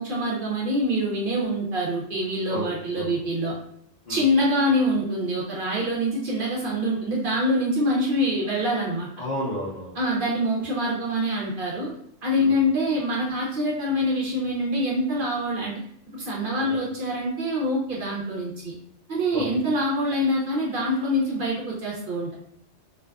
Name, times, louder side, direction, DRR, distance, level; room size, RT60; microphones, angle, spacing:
voice 1, 0.0-3.5 4.1-9.1 9.9-11.9 12.2-15.7 16.1-18.7 19.1-22.3, equal, 55° right, -3 dB, 0.7 m, -25 dB
voice 2, 9.2-9.9 12.4-12.5 16.5-16.7 19.3-19.4, equal, 50° left, -6 dB, 0.7 m, -32 dB
2.5 x 2.3 x 2.2 m, 0.68 s
omnidirectional pair, 1.2 m